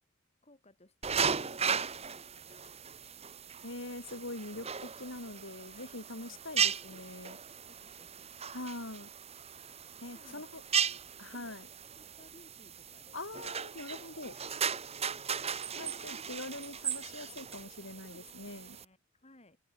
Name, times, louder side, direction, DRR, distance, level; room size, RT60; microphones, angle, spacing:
voice 1, 0.4-3.3 5.7-5.9 6.2-6.4 7.7-8.3 10.1-13.4 14.2-15.6 18.0-18.3 18.6-19.6, left 1 dB, 30° left, 4.8 m, -62 dB
sound 1, 1.0-18.8, right 7 dB, 30° right, 1.6 m, -37 dB
voice 2, 3.6-7.4 8.5-9.1 10.0-10.6 11.2-11.7 13.1-14.3 15.7-18.8, left 2 dB, 65° left, 4.3 m, -43 dB
open air
head